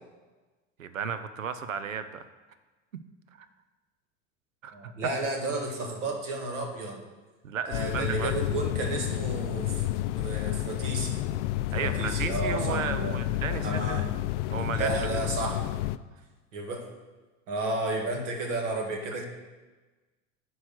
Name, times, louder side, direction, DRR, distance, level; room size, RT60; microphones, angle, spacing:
voice 1, 0.8-2.2 3.4-3.5 4.6-4.9 7.4-8.4 11.7-14.1 14.5-15.3, right 7 dB, 90° right, 11 dB, 0.6 m, -34 dB
voice 2, 4.7-7.0 7.7-11.2 11.8-13.2 13.5-14.1 14.5-15.6 16.5-16.9 17.5-19.2, right 2 dB, 70° right, 2 dB, 2.0 m, -32 dB
sound 1, 7.7-16.0, left 14 dB, 65° left, 0.5 m, -30 dB
9.5 x 4.8 x 5.9 m, 1.2 s
hypercardioid pair, 80°, 38 cm